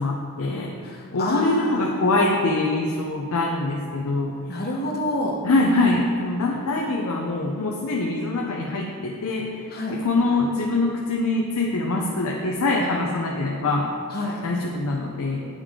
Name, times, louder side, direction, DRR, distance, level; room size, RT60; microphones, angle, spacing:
voice 1, 0.0-0.8 1.1-4.3 5.4-9.5 9.9-13.9 14.4-15.4, left 2 dB, 85° left, -1 dB, 0.6 m, -24 dB
voice 2, 0.8-1.8 4.5-5.4 9.7-10.0 14.1-14.4, left 1 dB, 45° left, -2 dB, 1.1 m, -28 dB
8.9 x 4.9 x 3.7 m, 2.1 s
head